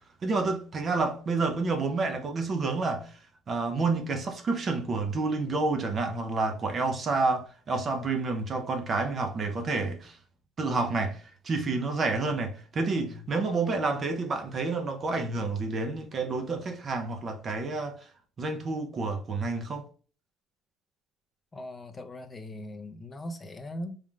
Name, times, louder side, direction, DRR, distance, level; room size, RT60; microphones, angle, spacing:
voice 1, 0.2-3.2 3.5-10.2 10.6-18.1 18.4-19.9, right 3 dB, 30° right, 0.8 m, -29 dB
voice 2, 21.5-24.0, left 1 dB, 15° left, 0.6 m, -40 dB
5.4 x 3.1 x 2.4 m
cardioid pair, 155°, 0 cm